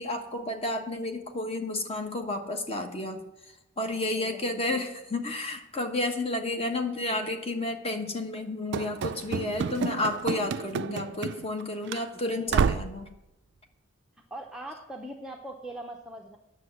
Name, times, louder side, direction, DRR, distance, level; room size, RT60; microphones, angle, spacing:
voice 1, 0.0-13.1, left 2 dB, 30° left, 4 dB, 1.2 m, -31 dB
voice 2, 3.8-4.8 6.3-6.6 12.3-12.6 14.3-16.4, right 1 dB, 5° right, 1 dB, 0.7 m, -42 dB
Run / Slam, 8.7-11.6 11.9-12.0 12.5-13.0, right 5 dB, 55° right, 0.4 m, -29 dB
9.5 x 6.4 x 7.7 m, 0.93 s
head